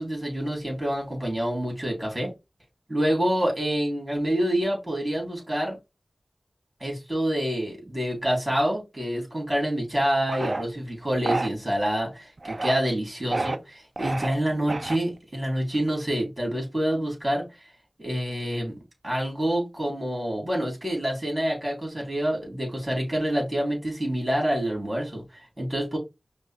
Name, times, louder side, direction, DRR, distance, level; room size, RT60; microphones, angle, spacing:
voice 1, 0.0-2.3 2.9-5.8 6.8-17.5 18.0-18.8 19.0-26.0, equal, 25° right, 0 dB, 3.3 m, -27 dB
sound 1, 10.3-10.6 11.2-11.5 12.4-12.8 13.3-13.6 14.0-14.3 14.7-15.2, right 2 dB, 50° right, 0.4 m, -29 dB
5.2 x 2.2 x 4.4 m, 0.23 s
wide cardioid pair, 70°, 0 cm